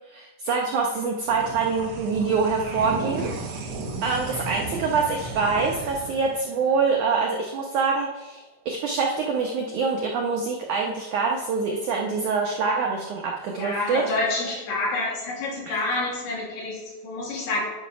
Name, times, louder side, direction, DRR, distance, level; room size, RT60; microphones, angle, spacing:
voice 1, 0.1-3.3 4.0-14.0 15.7-15.9, right 4 dB, 85° right, 0 dB, 1.7 m, -25 dB
sound 1, 1.2-8.0, right 3 dB, 65° right, 1.7 m, -35 dB
voice 2, 13.5-17.7, left 2 dB, 80° left, -4 dB, 4.6 m, -28 dB
9.7 x 5.2 x 5.8 m, 1.1 s
omnidirectional pair, 4.8 m